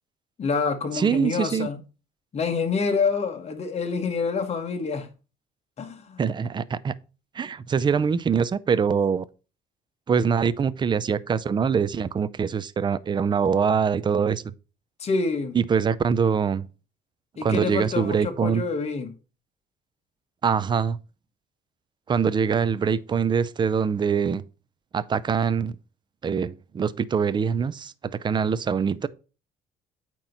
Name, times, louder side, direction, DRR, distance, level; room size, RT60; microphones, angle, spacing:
voice 1, 0.4-1.8 2.3-5.1 5.8-6.2 15.0-15.6 17.4-19.1, left 4 dB, 40° left, 1.5 m, -27 dB
voice 2, 0.9-1.7 6.2-6.9 7.3-9.2 10.1-14.5 15.5-16.7 17.4-18.6 20.4-21.0 22.1-24.4 24.9-25.8 26.2-29.1, right 6 dB, 25° right, 0.5 m, -24 dB
8.8 x 3.0 x 5.5 m
cardioid pair, 110°, 17 cm